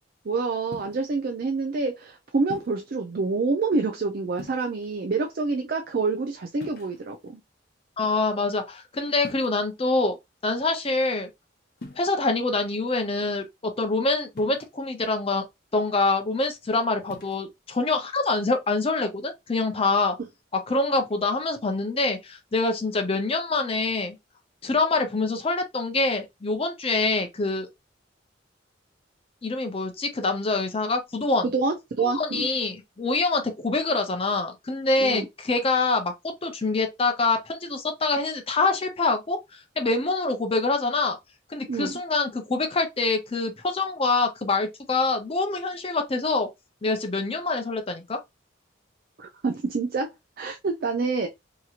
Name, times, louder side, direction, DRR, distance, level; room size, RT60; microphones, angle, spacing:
voice 1, 0.2-7.4 31.5-32.5 35.0-35.2 41.7-41.9 49.2-51.3, right 4 dB, 50° right, 0.5 m, -27 dB
sound 1, 0.7-1.1 2.5-2.9 4.3-5.0 6.6-7.3 9.2-9.7 11.8-12.1 14.4-14.9 17.0-17.4, left 2 dB, 55° left, 0.8 m, -43 dB
voice 2, 8.0-10.2 10.4-11.3 12.0-15.4 15.7-20.2 20.5-24.2 24.6-27.7 29.4-31.5 32.0-36.1 36.4-41.2 41.5-46.5 46.8-48.2, left 3 dB, 30° left, 0.6 m, -25 dB
2.8 x 2.8 x 2.4 m
head